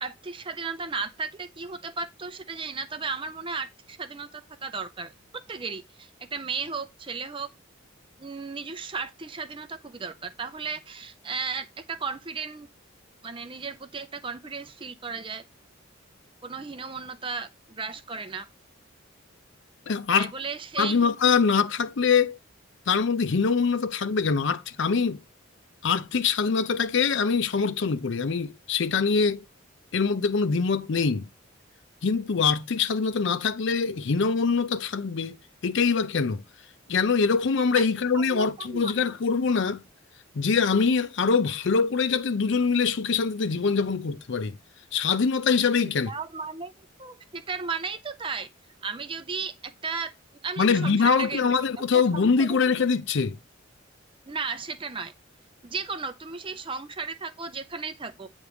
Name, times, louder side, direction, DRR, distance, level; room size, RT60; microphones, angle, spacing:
voice 1, 0.0-5.1 5.5-7.5 8.2-12.7 13.2-15.4 16.4-18.5 20.1-21.0 37.7-37.9 38.1-38.9 45.8-46.7 47.0-48.5 48.8-50.1 50.4-51.5 51.9-52.6 54.3-55.1 55.6-58.3, right 4 dB, 25° right, 0.6 m, -35 dB
voice 2, 19.9-20.3 20.8-22.4 22.9-25.2 25.8-29.4 29.9-31.3 32.0-35.4 35.6-36.4 36.9-39.8 40.3-44.6 44.9-46.1 50.6-53.4, left 5 dB, 60° left, 0.5 m, -24 dB
8.2 x 3.2 x 5.0 m
head